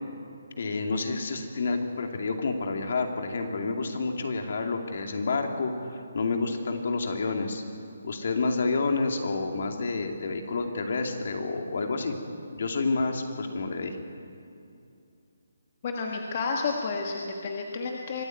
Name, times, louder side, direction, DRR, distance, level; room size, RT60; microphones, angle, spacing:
voice 1, 0.6-7.6 8.0-12.2 12.5-14.0, left 3 dB, 55° left, 4 dB, 2.6 m, -29 dB
voice 2, 15.8-18.2, left 4 dB, 30° left, 1 dB, 1.5 m, -31 dB
24.5 x 13.5 x 9.3 m, 2.6 s
hypercardioid pair, 170°, 0 cm